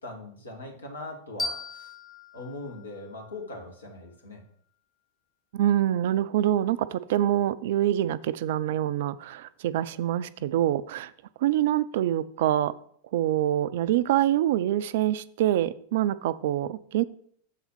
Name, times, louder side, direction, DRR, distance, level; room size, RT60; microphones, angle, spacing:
voice 1, 0.0-1.9 2.3-4.4, left 2 dB, 75° left, 1 dB, 1.7 m, -40 dB
sound 1, 1.4-4.2, left 3 dB, 15° left, 0.9 m, -38 dB
voice 2, 5.5-11.1 11.4-12.7 13.1-17.0, right 12 dB, 55° right, 17 dB, 0.3 m, -25 dB
7.2 x 4.1 x 5.8 m, 0.62 s
figure-of-eight pair, 90°, 0 cm